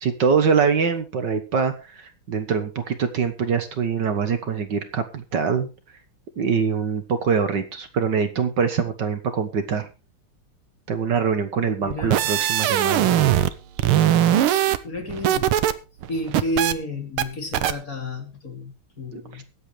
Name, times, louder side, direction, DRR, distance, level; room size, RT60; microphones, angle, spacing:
voice 1, 0.0-5.7 6.4-9.9 10.9-13.1 19.1-19.4, right 6 dB, 60° right, 8 dB, 1.8 m, -24 dB
voice 2, 11.8-12.3 14.8-15.5 16.1-19.4, left 1 dB, 40° left, 3 dB, 3.3 m, -31 dB
sound 1, 11.9-13.5 13.8-15.7 16.0-16.7 17.2-17.3 17.5-17.7, right 11 dB, 85° right, 1.8 m, -20 dB
23.5 x 8.0 x 3.2 m, 0.30 s
omnidirectional pair, 2.3 m